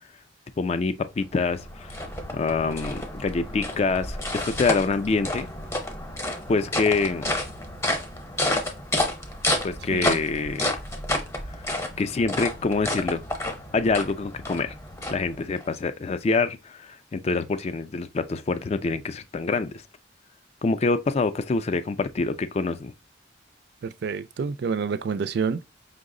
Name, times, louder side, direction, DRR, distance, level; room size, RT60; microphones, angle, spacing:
voice 1, 0.6-1.9 2.3-5.5 6.5-7.3 9.6-10.8 12.0-13.2 13.7-14.8 15.1-19.7 20.6-22.9, left 4 dB, 35° left, 0.3 m, -26 dB
sound 1, 1.2-15.7, left 1 dB, 15° left, 0.7 m, -30 dB
voice 2, 23.8-25.6, right 5 dB, 60° right, 0.4 m, -28 dB
5.3 x 2.0 x 3.6 m
head